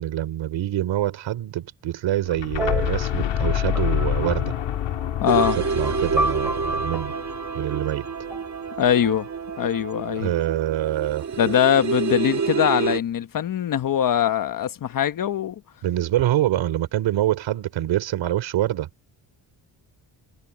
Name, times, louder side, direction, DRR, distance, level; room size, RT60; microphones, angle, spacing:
voice 1, 0.0-4.5 5.7-7.1 7.5-8.1 10.2-11.2 15.8-18.9, right 13 dB, 90° right, 3.3 m, -25 dB
sound 1, 2.3-8.1, left 11 dB, 75° left, 1.7 m, -27 dB
sound 2, 2.6-10.1, right 1 dB, 5° right, 5.3 m, -33 dB
voice 2, 5.2-5.6 8.8-9.3 9.6-10.3 11.4-15.6, left 9 dB, 50° left, 1.1 m, -22 dB
sound 3, 5.3-13.0, right 6 dB, 40° right, 1.5 m, -28 dB
cardioid pair, 140°, 44 cm